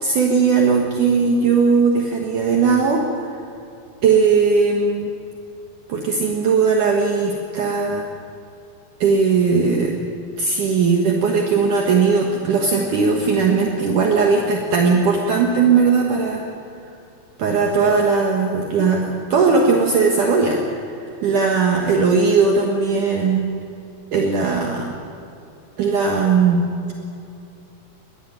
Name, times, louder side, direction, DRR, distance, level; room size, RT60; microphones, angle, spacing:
voice 1, 0.0-3.0 4.0-5.1 5.9-8.0 9.0-10.0 10.4-16.4 17.4-20.9 21.2-23.5 24.1-25.0 25.8-26.7, right 5 dB, 60° right, 1 dB, 2.7 m, -18 dB
21.5 x 14.5 x 9.1 m, 2.8 s
omnidirectional pair, 4.5 m